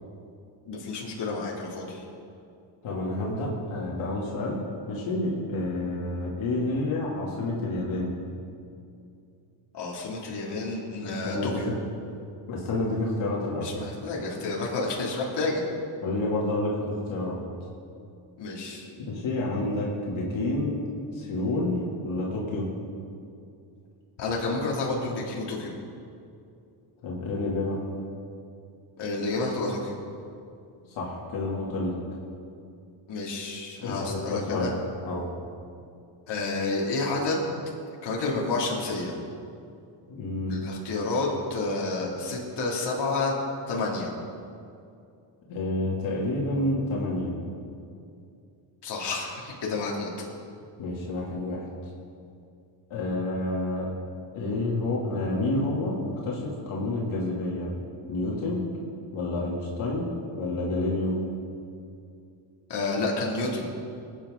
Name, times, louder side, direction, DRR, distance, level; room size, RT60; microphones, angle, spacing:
voice 1, 0.6-2.0 9.7-11.7 13.6-15.6 18.4-18.9 24.2-25.7 29.0-30.0 33.1-34.7 36.3-37.6 38.0-39.2 40.5-43.4 43.7-44.1 48.8-50.3 62.7-63.7, left 3 dB, 55° left, -3 dB, 2.9 m, -30 dB
voice 2, 2.8-8.1 11.0-11.8 12.1-12.2 12.5-13.7 16.0-17.4 19.0-20.8 21.1-21.8 22.0-22.7 27.0-27.8 30.9-31.9 33.8-34.7 35.0-35.2 40.1-40.6 45.5-47.3 50.8-51.7 52.9-53.9 54.3-57.7 58.1-58.6 59.1-61.2, left 2 dB, 75° left, -4 dB, 2.8 m, -29 dB
19.5 x 9.1 x 3.8 m, 2.5 s
cardioid pair, 90°, 48 cm